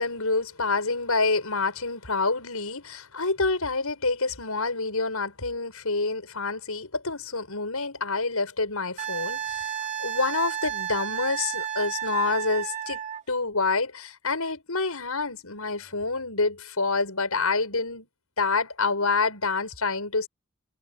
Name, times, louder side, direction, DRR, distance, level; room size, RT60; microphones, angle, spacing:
voice 1, 0.0-9.7 10.0-13.0 13.3-18.1 18.4-20.3, left 3 dB, 85° left, 6.6 m, -27 dB
Wind instrument woodwind instrument, 9.0-13.2 15.9-16.0, right 10 dB, 35° right, 3.2 m, -32 dB
head